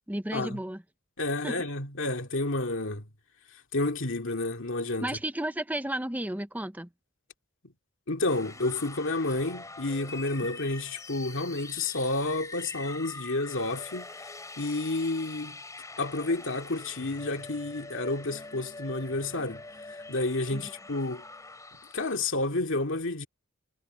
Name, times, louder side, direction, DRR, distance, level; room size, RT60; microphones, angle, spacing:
voice 1, 0.1-0.8 1.4-1.6 5.0-6.9 20.5-20.7, right 1 dB, 5° right, 0.8 m, -33 dB
voice 2, 1.2-3.1 3.7-5.1 8.1-14.1 14.6-15.6 16.0-19.6 20.1-21.2 21.9-23.3, left 2 dB, 60° left, 2.4 m, -30 dB
sound 1, 8.2-22.3, left 3 dB, 15° left, 2.9 m, -44 dB
head